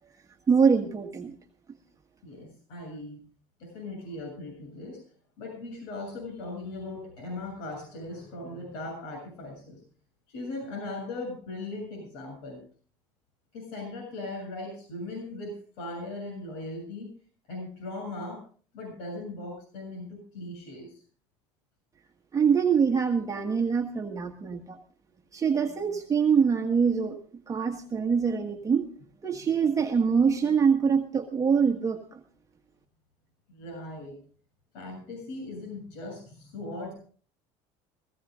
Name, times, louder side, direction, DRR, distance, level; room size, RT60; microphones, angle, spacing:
voice 1, 0.5-1.4 22.3-24.8 25.3-27.2 27.5-28.9 29.2-32.2, right 6 dB, 25° right, 3 dB, 1.4 m, -24 dB
voice 2, 2.2-3.2 3.6-5.0 5.4-9.8 10.3-12.6 13.5-17.1 17.5-18.4 18.7-20.9 33.5-34.2 34.7-36.9, left 2 dB, 85° left, 3 dB, 7.1 m, -39 dB
16.0 x 16.0 x 3.7 m, 0.43 s
supercardioid pair, 110°, 14 cm